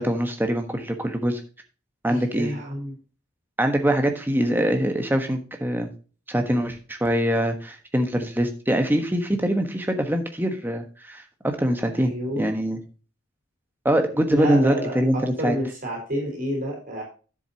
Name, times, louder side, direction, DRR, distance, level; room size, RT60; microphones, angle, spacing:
voice 1, 0.0-1.4 2.0-2.5 3.6-5.9 6.3-12.8 13.8-15.6, equal, 10° right, 5 dB, 1.2 m, -23 dB
voice 2, 2.1-2.9 11.9-12.5 14.3-17.0, equal, 40° right, -1 dB, 4.3 m, -29 dB
10.5 x 7.7 x 2.8 m, 0.36 s
head